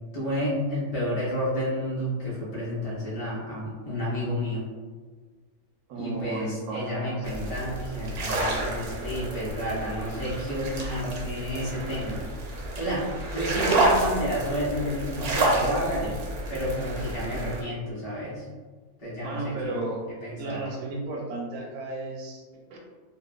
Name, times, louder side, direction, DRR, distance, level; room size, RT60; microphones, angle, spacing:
voice 1, 0.1-4.7 5.9-12.2 12.8-16.2 16.5-18.5 19.0-19.8 20.2-20.6, equal, 35° left, -8 dB, 0.6 m, -30 dB
voice 2, 5.9-7.5 19.2-22.4 22.7-22.8, right 2 dB, 90° right, 0 dB, 1.1 m, -34 dB
sound 1, 7.2-17.6, right 2 dB, 65° right, 0.6 m, -29 dB
2.8 x 2.2 x 2.3 m, 1.4 s
omnidirectional pair, 1.5 m